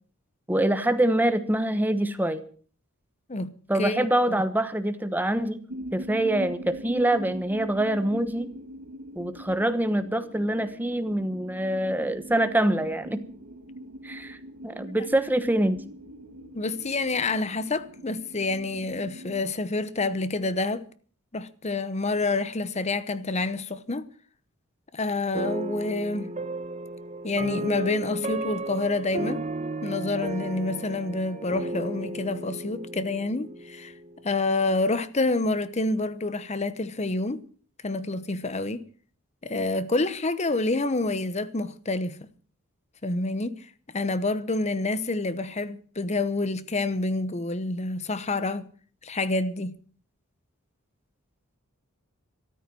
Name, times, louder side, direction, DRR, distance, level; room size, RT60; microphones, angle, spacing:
voice 1, 0.5-2.4 3.7-5.6 5.9-8.5 9.2-13.2 14.0-14.4 14.6-15.8, right 1 dB, 10° right, 1.1 m, -25 dB
sound 1, 5.7-19.4, right 1 dB, 80° right, 2.0 m, -42 dB
voice 2, 16.5-20.9 21.3-24.1 24.9-26.4 27.2-29.4 29.8-33.9 34.2-37.4 37.8-38.8 39.4-42.2 43.0-48.7 49.0-49.7, left 2 dB, 30° left, 0.9 m, -28 dB
sound 2, 25.3-34.5, right 2 dB, 35° right, 1.1 m, -34 dB
14.0 x 12.5 x 6.2 m
head